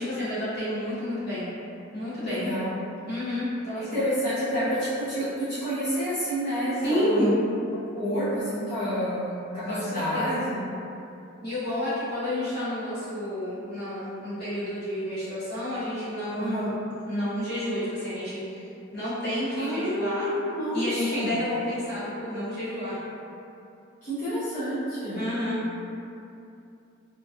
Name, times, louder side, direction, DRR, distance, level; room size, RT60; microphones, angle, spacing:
voice 1, 0.0-1.5 1.9-2.4 3.1-4.0 6.8-7.3 9.7-10.4 11.4-18.7 18.9-20.3 20.7-23.0 25.1-25.6, left 1 dB, 50° left, -11 dB, 1.1 m, -30 dB
voice 2, 2.3-2.7 3.7-7.3 7.7-10.7 16.4-16.7 19.6-20.9 21.1-21.4 24.0-25.3, equal, 35° left, -16 dB, 0.8 m, -29 dB
2.9 x 2.5 x 2.5 m, 2.7 s
head